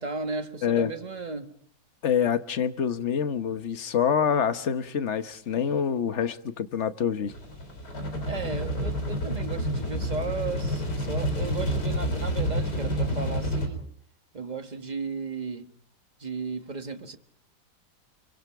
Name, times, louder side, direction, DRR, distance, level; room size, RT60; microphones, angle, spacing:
voice 1, 0.0-1.5 8.3-13.9 14.3-15.7 16.2-17.2, right 4 dB, 25° right, 1.4 m, -35 dB
voice 2, 2.0-7.3, left 8 dB, 50° left, 1.3 m, -26 dB
sound 1, 7.3-13.7, equal, 80° left, 4.3 m, -29 dB
28.5 x 24.5 x 4.8 m
omnidirectional pair, 1.8 m